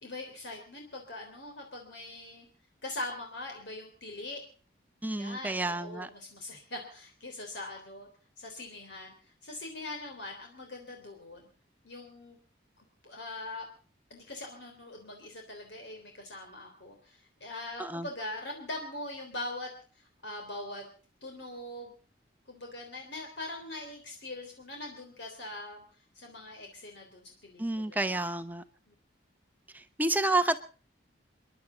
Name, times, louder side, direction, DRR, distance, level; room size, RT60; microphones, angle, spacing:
voice 1, 0.0-2.5 2.8-4.4 5.2-8.1 8.4-11.5 11.8-12.4 12.8-13.6 14.1-20.9 21.2-21.9 22.5-25.8 26.2-28.1 28.9-29.0, left 2 dB, 70° left, 2 dB, 3.5 m, -42 dB
voice 2, 5.0-6.1 17.8-18.1 27.6-28.6 29.7-30.6, right 2 dB, 10° right, 9 dB, 0.8 m, -30 dB
30.0 x 11.5 x 4.0 m, 0.41 s
head